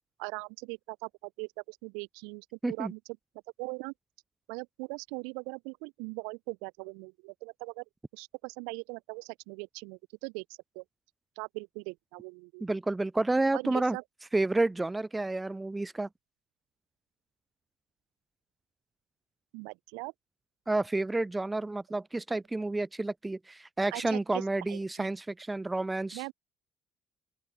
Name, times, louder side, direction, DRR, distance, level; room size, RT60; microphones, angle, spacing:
voice 1, 0.2-3.0 3.6-3.9 4.5-7.8 8.1-10.4 10.7-10.8 11.4-12.6 13.5-14.0 19.5-20.1 23.9-25.1 26.1-26.3, right 36 dB, 70° right, 0.6 m, -40 dB
voice 2, 12.6-14.0 14.3-16.1 20.7-26.2, right 2 dB, 15° right, 0.3 m, -30 dB
open air
figure-of-eight pair, 50°, 0 cm